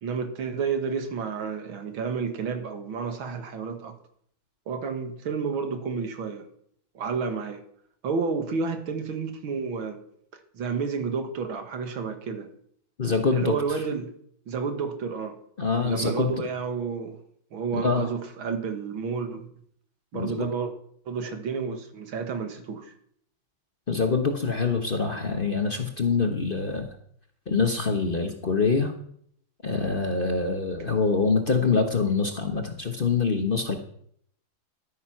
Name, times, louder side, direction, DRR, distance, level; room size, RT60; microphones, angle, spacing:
voice 1, 0.0-3.9 4.7-6.5 6.9-7.6 8.0-10.0 10.5-12.5 13.3-14.1 14.5-15.4 15.8-17.2 17.5-19.5 20.1-20.7 21.1-22.9, right 5 dB, 90° right, 7 dB, 2.4 m, -30 dB
voice 2, 13.0-13.8 15.6-16.3 17.7-18.1 20.1-20.5 23.9-26.9 27.5-28.9 29.6-33.8, left 4 dB, 35° left, 5 dB, 0.9 m, -25 dB
12.0 x 9.3 x 5.8 m, 0.65 s
omnidirectional pair, 2.2 m